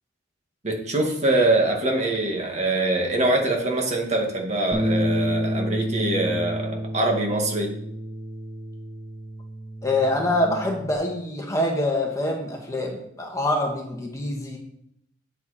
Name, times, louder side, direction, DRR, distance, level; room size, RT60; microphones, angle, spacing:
voice 1, 0.6-7.7, right 2 dB, 35° right, 0 dB, 1.9 m, -23 dB
Bass guitar, 4.7-11.0, equal, 70° right, 4.5 m, -29 dB
voice 2, 9.8-14.6, left 1 dB, 15° left, 0 dB, 1.5 m, -25 dB
9.1 x 8.0 x 4.2 m, 0.76 s
head